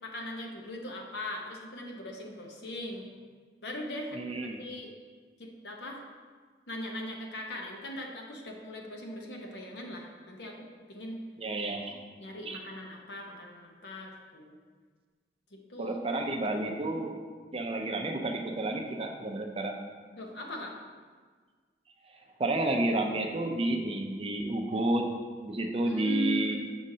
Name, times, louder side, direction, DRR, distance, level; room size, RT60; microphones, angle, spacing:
voice 1, 0.0-3.1 3.6-4.9 5.4-6.0 6.7-11.2 12.2-14.6 15.5-16.0 20.1-20.7 25.8-26.7, equal, 70° left, 0 dB, 0.9 m, -39 dB
voice 2, 4.1-4.6 11.4-12.0 12.5-12.6 15.8-17.2 17.5-19.7 22.4-25.1 25.4-26.6, right 1 dB, 30° right, 3 dB, 0.5 m, -30 dB
6.3 x 6.2 x 2.7 m, 1.5 s
head